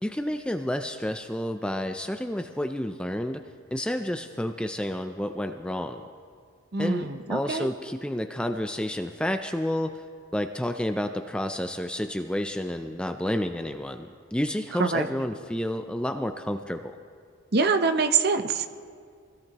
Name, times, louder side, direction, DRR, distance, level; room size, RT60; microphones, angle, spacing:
voice 1, 0.0-3.4 3.7-6.0 6.8-10.0 10.3-17.0, left 1 dB, 5° left, 6 dB, 0.4 m, -30 dB
voice 2, 6.7-7.7 14.8-15.1 17.5-18.7, right 4 dB, 50° right, 8 dB, 0.8 m, -24 dB
24.0 x 17.0 x 3.0 m, 2.1 s
head